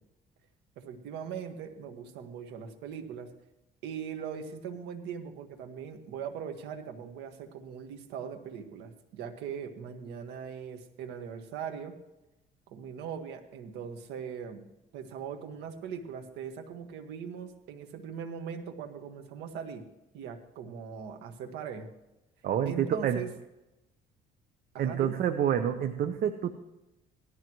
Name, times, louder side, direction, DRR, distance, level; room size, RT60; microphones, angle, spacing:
voice 1, 0.8-3.3 3.8-12.0 12.7-14.7 14.9-21.9 22.7-23.3 24.7-25.2, right 7 dB, 85° right, 5 dB, 1.8 m, -40 dB
voice 2, 22.4-23.2 24.8-26.5, right 9 dB, 60° right, 7 dB, 1.0 m, -28 dB
18.0 x 13.0 x 3.2 m, 0.95 s
cardioid pair, 110°, 17 cm